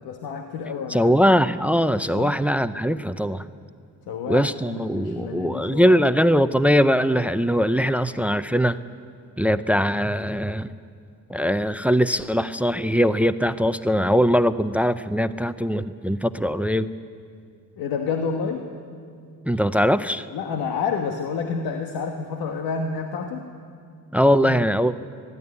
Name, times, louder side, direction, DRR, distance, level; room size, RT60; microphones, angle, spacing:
voice 1, 0.0-1.1 2.1-2.4 4.1-6.0 17.8-18.7 20.3-23.5 24.4-24.6, left 5 dB, 85° left, 4 dB, 1.4 m, -29 dB
voice 2, 0.9-3.4 4.3-8.8 9.4-10.7 11.3-16.9 19.5-20.3 24.1-24.9, equal, 5° right, 13 dB, 0.6 m, -21 dB
23.5 x 12.5 x 9.7 m, 2.3 s
supercardioid pair, 70°, 36 cm